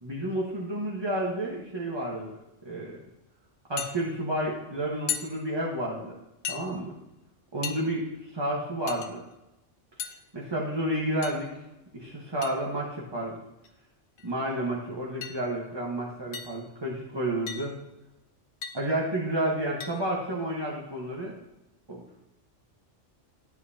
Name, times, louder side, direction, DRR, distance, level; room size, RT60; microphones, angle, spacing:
voice 1, 0.0-2.4 2.6-3.0 3.7-6.2 6.5-6.9 7.5-9.2 10.3-11.5 11.9-13.4 14.2-17.7 18.7-21.3 21.9-22.0, right 1 dB, 20° right, -4 dB, 1.3 m, -31 dB
sound 1, 3.8-3.9 5.1-5.3 6.4-6.6 7.6-7.8 8.9-9.1 10.0-10.2 11.2-11.5 12.4-12.6 13.6-13.7 14.2-14.3 15.2-15.4 16.3-16.6 17.5-17.7 18.6-18.8 19.8-20.0, left 8 dB, 70° left, 1.1 m, -35 dB
12.0 x 9.2 x 2.8 m, 0.94 s
omnidirectional pair, 1.3 m